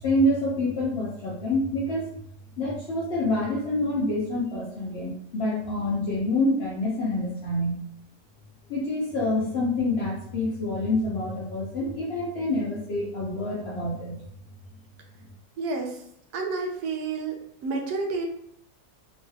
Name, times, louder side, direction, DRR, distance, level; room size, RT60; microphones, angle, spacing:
voice 1, 0.0-2.2 2.6-7.8 8.7-14.2, left 1 dB, 65° left, -5 dB, 0.6 m, -27 dB
voice 2, 15.6-16.0 16.3-17.4 17.6-18.3, right 3 dB, 80° right, 1 dB, 1.2 m, -29 dB
3.1 x 2.8 x 2.3 m, 0.69 s
omnidirectional pair, 1.6 m